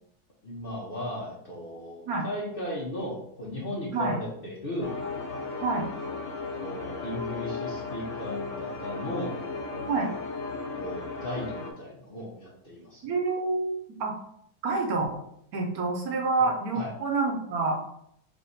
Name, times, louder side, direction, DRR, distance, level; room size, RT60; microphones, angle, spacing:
voice 1, 0.4-5.0 6.5-9.4 10.8-13.0 16.7-16.9, left 1 dB, 45° left, -4 dB, 0.8 m, -36 dB
sound 1, 4.8-11.7, left 4 dB, 90° left, 1.4 m, -35 dB
voice 2, 13.0-13.7 14.0-14.1 14.6-15.2 15.5-17.7, right 3 dB, 70° right, 2 dB, 1.1 m, -27 dB
3.5 x 3.1 x 4.0 m, 0.72 s
omnidirectional pair, 1.7 m